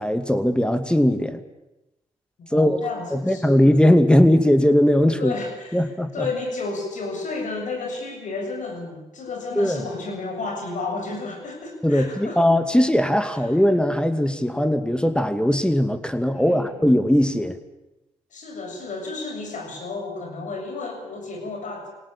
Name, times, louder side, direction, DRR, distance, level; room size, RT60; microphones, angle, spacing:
voice 1, 0.0-1.4 2.5-2.8 3.1-5.3 5.7-6.3 9.6-9.8 11.8-17.6, left 1 dB, 5° left, 9 dB, 2.4 m, -19 dB
voice 2, 2.4-3.6 4.1-4.3 5.2-12.4 13.4-13.5 16.3-16.8 18.3-21.9, left 3 dB, 65° left, 3 dB, 7.4 m, -32 dB
22.0 x 18.0 x 9.0 m, 0.94 s
supercardioid pair, 50°, 14 cm